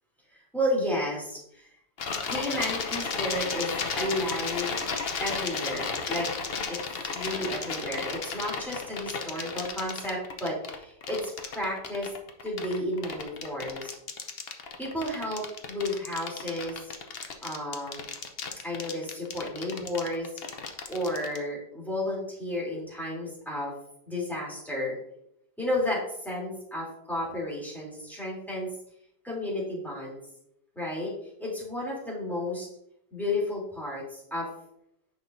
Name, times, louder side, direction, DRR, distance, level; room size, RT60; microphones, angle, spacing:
voice 1, 0.5-1.7 2.3-4.7 5.2-6.3 6.7-6.8 7.0-12.1 12.4-13.9 14.8-16.9 17.4-18.1 18.6-20.3 20.9-23.7 24.1-25.0 25.6-28.7 29.2-30.2 30.7-31.1 31.4-32.7 33.1-34.5, left 1 dB, ahead, -5 dB, 2.9 m, -32 dB
sound 1, 2.0-21.4, left 5 dB, 60° left, 0.6 m, -33 dB
9.4 x 6.2 x 2.6 m, 0.75 s
omnidirectional pair, 2.0 m